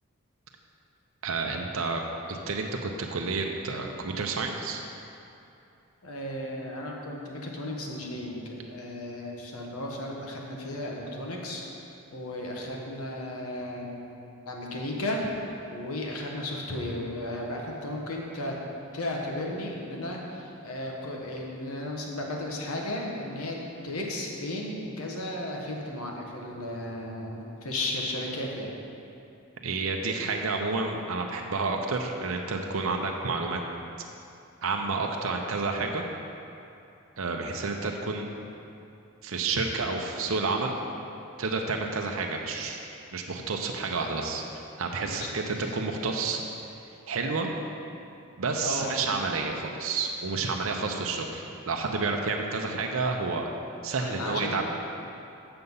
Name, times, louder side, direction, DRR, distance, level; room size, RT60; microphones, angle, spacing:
voice 1, 1.2-2.0 2.3-4.8 29.6-33.6 34.6-36.0 37.2-38.3 39.2-40.7 41.4-46.4 47.1-47.5 48.4-53.5 53.8-54.6, right 4 dB, 70° right, 2 dB, 0.7 m, -30 dB
voice 2, 6.0-11.6 12.1-14.0 14.5-15.2 15.7-18.6 18.9-28.7 45.0-45.3 48.6-48.9 54.0-54.6, left 1 dB, 90° left, -1 dB, 1.3 m, -34 dB
8.0 x 6.8 x 5.5 m, 2.7 s
head